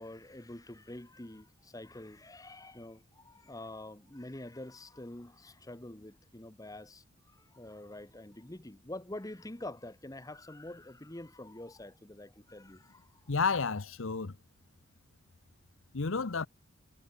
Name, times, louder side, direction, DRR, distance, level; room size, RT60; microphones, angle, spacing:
voice 1, 0.0-13.1, left 1 dB, 15° left, 1.0 m, -46 dB
voice 2, 13.3-14.4 15.9-16.5, left 4 dB, 75° left, 0.9 m, -31 dB
head